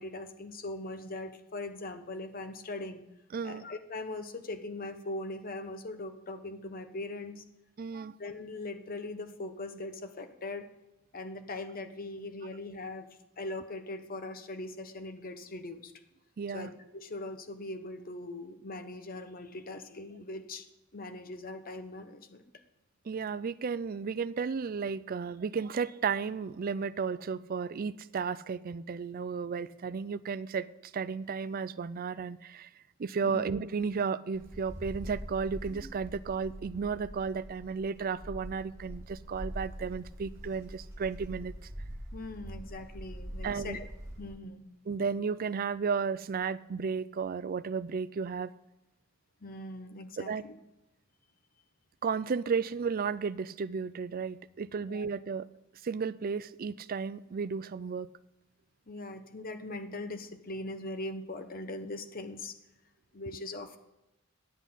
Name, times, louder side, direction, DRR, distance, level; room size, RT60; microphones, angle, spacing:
voice 1, 0.0-3.0 3.4-7.4 8.2-10.7 11.1-13.1 13.4-15.9 16.5-20.7 20.9-22.4 33.2-33.4 42.1-43.9 44.2-44.6 49.4-50.6 54.9-55.0 58.9-62.6 63.1-63.8, left 2 dB, 45° left, 1.0 m, -40 dB
voice 2, 3.3-3.6 7.8-8.2 16.4-16.7 23.1-32.7 33.0-41.5 43.4-43.8 44.9-48.5 50.2-50.4 52.0-55.5 55.8-58.1, right 5 dB, 45° right, 0.4 m, -33 dB
Wind, 34.3-44.4, equal, 15° right, 2.6 m, -44 dB
10.5 x 8.2 x 5.6 m
head